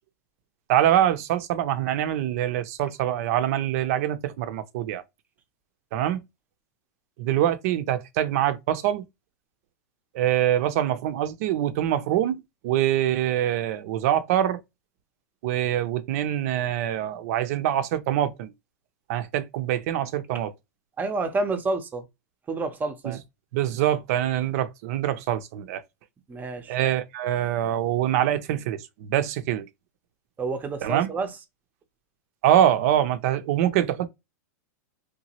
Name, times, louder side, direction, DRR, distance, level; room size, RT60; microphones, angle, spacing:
voice 1, 0.7-5.0 5.9-6.2 7.2-9.0 10.1-14.6 15.4-18.5 19.1-20.5 23.0-23.2 23.5-25.8 26.7-29.7 30.8-31.1 32.4-34.1, right 11 dB, 60° right, 0.5 m, -24 dB
voice 2, 21.0-22.0 22.5-23.2 26.3-26.8 30.4-31.3, right 3 dB, 20° right, 0.6 m, -29 dB
2.9 x 2.2 x 2.8 m
hypercardioid pair, 120°, 9 cm